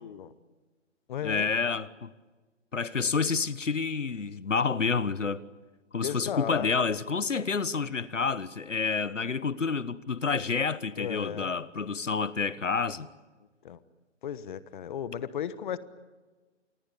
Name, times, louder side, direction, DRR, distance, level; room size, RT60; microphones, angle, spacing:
voice 1, 0.0-0.3 1.1-1.8 6.0-7.0 11.0-11.5 13.6-13.8 14.2-15.8, left 9 dB, 40° left, 1.3 m, -35 dB
voice 2, 1.2-2.1 2.7-5.4 5.9-13.1, left 5 dB, 90° left, 1.2 m, -29 dB
27.5 x 21.0 x 8.5 m
figure-of-eight pair, 140°, 36 cm